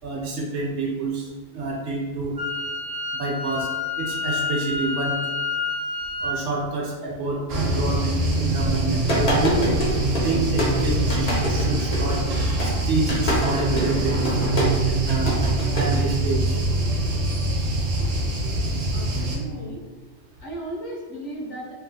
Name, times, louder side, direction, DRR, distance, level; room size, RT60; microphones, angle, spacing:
voice 1, 0.0-1.3 1.5-2.3 3.1-3.7 4.0-5.1 6.2-9.7 10.2-12.2 12.9-14.3 14.6-15.3 15.7-16.6, right 2 dB, 70° right, -2 dB, 0.9 m, -27 dB
Wind instrument woodwind instrument, 2.4-6.4, left 4 dB, 45° right, 0.5 m, -28 dB
sound 1, 7.5-19.4, right 2 dB, 85° right, 1.0 m, -24 dB
sound 2, 8.7-16.1, equal, 45° left, 0.5 m, -26 dB
voice 2, 18.9-19.8 20.4-21.7, right 1 dB, 70° left, -3 dB, 1.0 m, -35 dB
2.9 x 2.3 x 2.7 m, 1.3 s
omnidirectional pair, 1.3 m